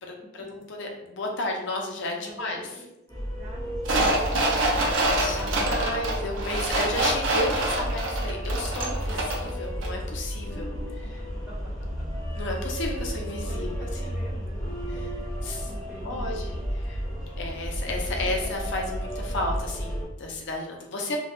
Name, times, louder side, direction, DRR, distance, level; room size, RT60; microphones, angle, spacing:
voice 1, 0.0-2.7 5.1-11.2 12.4-13.9 15.4-15.7 16.0-17.0 17.4-21.2, left 2 dB, 65° left, 1 dB, 0.5 m, -33 dB
voice 2, 2.2-5.7 10.7-11.1 11.5-12.2 13.4-15.0 15.4-16.6 18.2-18.3 21.0-21.2, equal, 5° right, -9 dB, 0.9 m, -45 dB
sound 1, 3.1-20.0, equal, 20° left, 0.8 m, -32 dB
sound 2, 3.8-9.5 9.8-9.9, right 2 dB, 75° right, 0.5 m, -26 dB
2.1 x 2.0 x 2.9 m, 0.94 s
head